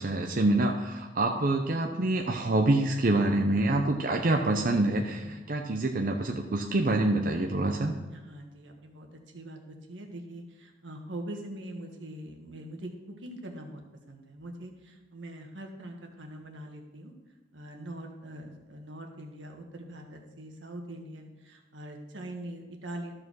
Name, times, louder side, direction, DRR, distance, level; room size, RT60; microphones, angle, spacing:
voice 1, 0.0-7.9, right 2 dB, 50° right, 3 dB, 0.6 m, -26 dB
voice 2, 8.1-17.1 17.5-23.1, right 1 dB, 80° right, 2 dB, 1.6 m, -43 dB
13.0 x 4.9 x 6.3 m, 1.2 s
head